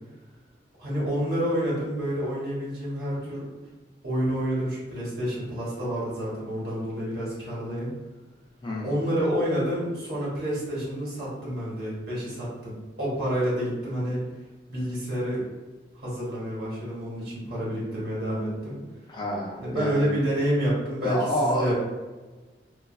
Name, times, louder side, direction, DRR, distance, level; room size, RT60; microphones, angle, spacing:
voice 1, 0.8-3.5 4.0-7.9 8.8-14.2 14.7-15.4 15.9-18.8 19.6-21.7, equal, 60° right, -7 dB, 1.2 m, -28 dB
voice 2, 8.6-9.0 19.1-20.1 21.0-21.7, equal, 25° left, -3 dB, 0.4 m, -28 dB
3.1 x 2.3 x 2.3 m, 1.3 s
head